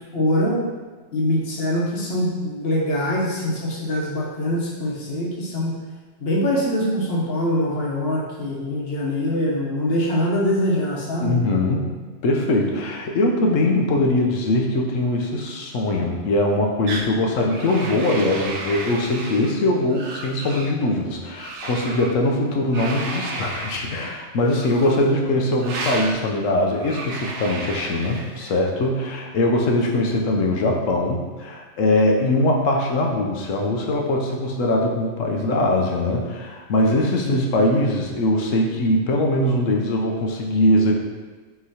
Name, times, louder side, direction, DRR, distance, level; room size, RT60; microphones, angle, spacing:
voice 1, 0.1-0.6 1.1-5.7 6.2-11.4 24.9-25.0 29.9-30.0 37.2-37.4, left 1 dB, 55° left, -4 dB, 1.1 m, -23 dB
voice 2, 11.2-11.9 12.2-40.9, left 1 dB, 85° left, 0 dB, 1.1 m, -21 dB
sound 1, 16.9-17.1 17.5-19.5 19.9-20.7 21.4-22.1 22.7-23.8 24.5-25.1 25.6-26.2 26.8-28.5, right 2 dB, 70° right, 0.9 m, -32 dB
5.8 x 3.0 x 2.8 m, 1.3 s
omnidirectional pair, 1.3 m